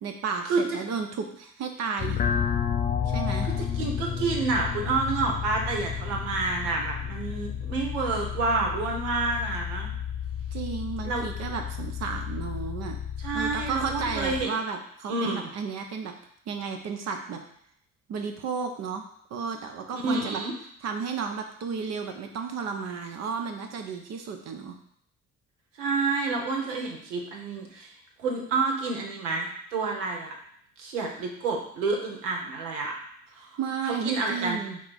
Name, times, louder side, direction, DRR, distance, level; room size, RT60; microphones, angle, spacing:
voice 1, 0.0-2.2 3.1-3.5 10.5-13.0 13.3-16.1 16.5-17.4 18.1-19.0 19.3-20.4 20.8-24.8 33.6-34.8, right 5 dB, 45° right, 4 dB, 0.6 m, -33 dB
sound 1, 2.0-14.5, left 8 dB, 20° left, 0.4 m, -32 dB
voice 2, 3.4-9.9 11.0-11.2 13.2-14.5 15.1-15.5 19.9-20.5 25.8-27.9 28.2-30.3 30.8-32.9 33.4-33.5 33.8-34.6, right 3 dB, 70° right, 1 dB, 0.9 m, -29 dB
4.4 x 2.4 x 4.0 m, 0.67 s
figure-of-eight pair, 50°, 37 cm